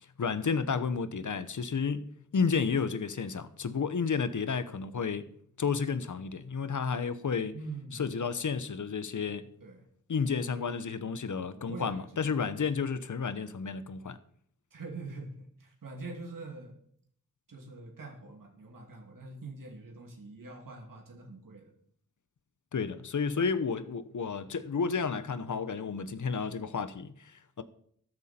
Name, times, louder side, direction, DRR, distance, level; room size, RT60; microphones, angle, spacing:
voice 1, 0.2-2.1 2.3-5.3 5.6-7.5 8.0-9.5 10.1-14.2 22.7-27.6, left 5 dB, 65° left, 0.9 m, -31 dB
voice 2, 7.5-8.1 9.6-9.9 11.5-12.3 14.7-16.8 17.5-21.7, right 3 dB, 75° right, 2.6 m, -44 dB
13.0 x 11.0 x 4.4 m
wide cardioid pair, 65°, 33 cm